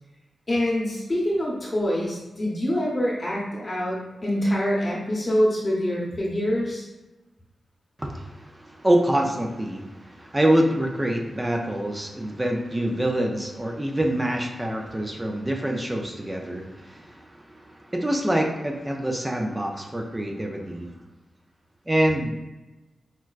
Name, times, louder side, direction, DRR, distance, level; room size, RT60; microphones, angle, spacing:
voice 1, 0.5-6.9, equal, 35° left, -6 dB, 0.9 m, -25 dB
voice 2, 8.0-20.9 21.9-22.3, right 1 dB, 15° right, 1 dB, 0.4 m, -26 dB
4.4 x 2.1 x 2.4 m, 1.1 s
wide cardioid pair, 105°, 0 cm